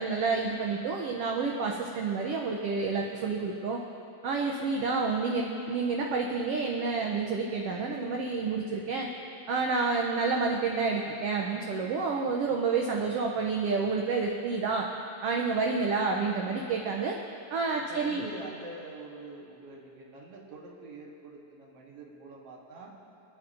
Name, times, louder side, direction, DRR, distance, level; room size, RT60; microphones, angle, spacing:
voice 1, 0.0-3.8 4.2-9.1 9.5-14.9 15.2-17.2 17.5-18.3, right 4 dB, 85° right, 1 dB, 1.3 m, -29 dB
voice 2, 17.7-22.9, right 2 dB, 55° right, -2 dB, 2.1 m, -46 dB
26.0 x 9.2 x 2.7 m, 2.8 s
omnidirectional pair, 3.7 m